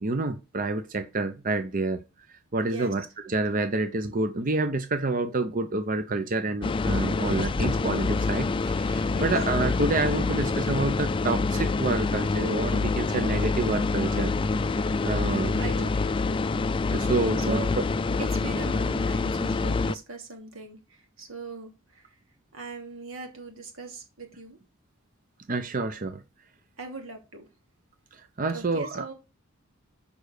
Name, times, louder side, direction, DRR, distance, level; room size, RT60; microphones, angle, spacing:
voice 1, 0.0-2.0 2.5-14.3 14.8-15.6 16.9-17.6 25.5-26.2 28.4-29.0, right 2 dB, 40° right, 0.7 m, -28 dB
voice 2, 2.6-2.9 9.1-9.3 14.0-14.5 15.3-16.3 17.4-17.7 18.2-22.1 22.5-24.6 26.8-27.5 28.5-29.1, right 4 dB, 85° right, 2.9 m, -40 dB
sound 1, 6.6-19.9, left 3 dB, 25° left, 0.3 m, -26 dB
7.1 x 5.2 x 6.5 m
head